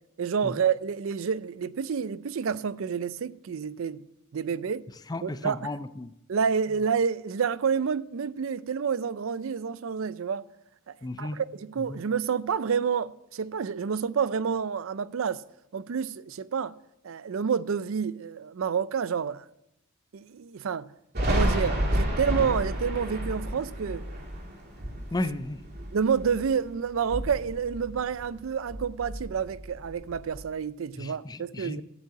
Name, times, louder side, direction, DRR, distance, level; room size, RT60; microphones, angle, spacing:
voice 1, 0.2-4.0 4.3-4.8 5.2-5.7 6.3-10.5 10.9-15.4 15.7-16.7 17.0-19.5 20.1-20.9 21.3-24.2 25.9-31.8, right 6 dB, 70° right, 0.4 m, -29 dB
voice 2, 5.1-6.1 11.0-11.4 11.9-12.0 25.1-25.6 31.0-31.8, left 2 dB, 20° left, 0.4 m, -33 dB
Thunder, 21.1-26.6 26.9-28.4 28.7-30.4, equal, 50° right, 3.0 m, -31 dB
12.5 x 5.5 x 8.1 m
head